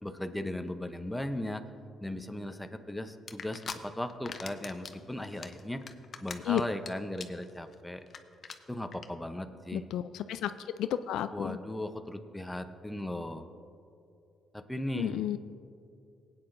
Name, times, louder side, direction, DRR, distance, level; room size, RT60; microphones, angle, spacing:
voice 1, 0.0-1.6 2.0-5.8 6.2-8.0 8.7-9.9 11.3-13.5 14.5-15.4, left 1 dB, 5° left, 7 dB, 0.7 m, -37 dB
sound 1, 3.3-3.8 4.1-4.9 5.2-6.9 7.1-7.4 7.7-7.8 8.1-8.2 8.4-8.5 8.9-9.0, left 6 dB, 50° left, 0.6 m, -40 dB
voice 2, 9.7-10.5 10.8-11.6 15.0-15.4, left 11 dB, 85° left, 12 dB, 0.3 m, -31 dB
19.0 x 8.8 x 2.6 m, 2.5 s
cardioid pair, 90°, 0 cm